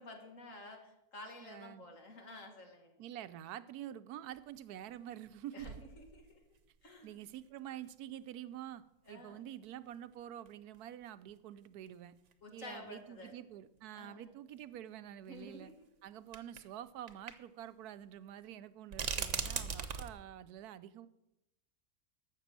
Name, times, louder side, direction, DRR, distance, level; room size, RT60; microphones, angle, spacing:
voice 1, 0.0-2.9 5.5-7.1 9.1-9.4 12.4-13.3 13.9-14.3 15.3-15.7, left 2 dB, 55° left, 4 dB, 2.3 m, -51 dB
voice 2, 1.4-1.9 3.0-5.7 7.0-12.1 12.5-15.7 16.0-21.1, right 11 dB, 85° right, 13 dB, 1.2 m, -47 dB
sound 1, 4.4-4.5 5.2-5.3 5.6-6.6 7.2-7.3 9.1-9.2 10.5-10.6 10.7-10.8 11.9-12.0 12.3-12.4 13.8-13.9 15.4-15.5 16.3-16.7 17.1-17.3 17.6-17.7 18.9-20.1, right 7 dB, 55° right, 1.2 m, -39 dB
12.0 x 7.5 x 7.5 m, 0.91 s
omnidirectional pair, 1.6 m